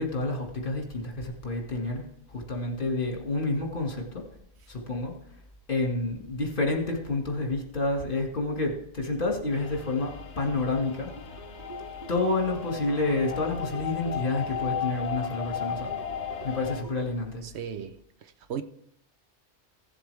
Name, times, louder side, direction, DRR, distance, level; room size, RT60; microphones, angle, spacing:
voice 1, 0.0-4.2 4.7-5.2 5.7-11.1 12.1-15.9 16.4-17.4, left 2 dB, 50° left, 2.1 m, -29 dB
sound 1, 9.5-16.8, left 8 dB, 75° left, 1.2 m, -36 dB
sound 2, 11.1-16.9, right 3 dB, 15° right, 1.0 m, -46 dB
voice 2, 17.4-18.6, right 8 dB, 70° right, 0.9 m, -37 dB
15.5 x 7.5 x 3.4 m
omnidirectional pair, 1.2 m